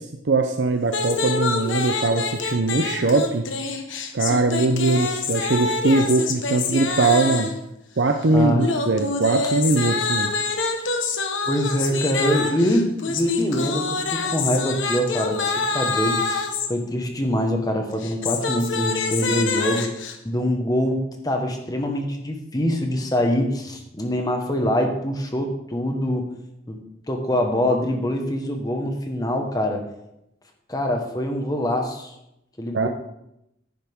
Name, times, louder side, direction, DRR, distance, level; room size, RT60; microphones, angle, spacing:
voice 1, 0.0-3.5 4.1-7.5 8.0-10.3 32.7-32.9, right 3 dB, 65° right, 6 dB, 0.6 m, -21 dB
sound 1, 0.9-7.6 8.6-16.7 17.9-20.1, left 4 dB, 80° left, 1.3 m, -26 dB
voice 2, 8.3-8.7 11.5-19.9 20.2-26.2 26.7-26.8 27.1-29.8 30.7-32.1 32.6-32.9, left 1 dB, 20° left, 3 dB, 1.4 m, -24 dB
10.5 x 10.5 x 3.6 m, 0.84 s
head